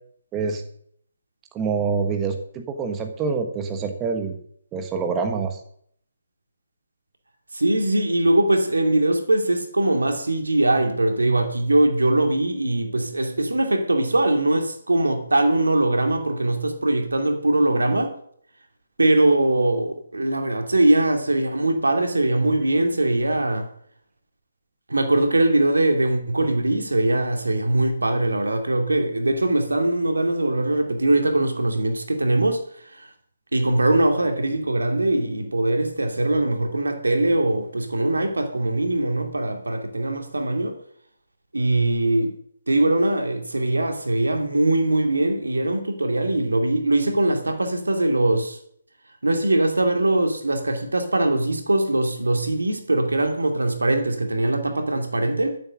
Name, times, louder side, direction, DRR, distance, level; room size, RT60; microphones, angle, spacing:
voice 1, 0.3-0.6 1.5-4.4 4.7-5.6, right 5 dB, 15° right, 1.3 m, -26 dB
voice 2, 7.5-18.1 19.0-23.7 24.9-33.1 33.5-40.8 41.5-42.3 42.7-48.6 49.2-55.6, right 1 dB, 85° right, 2.4 m, -21 dB
12.0 x 7.6 x 6.4 m
figure-of-eight pair, 145°, 0 cm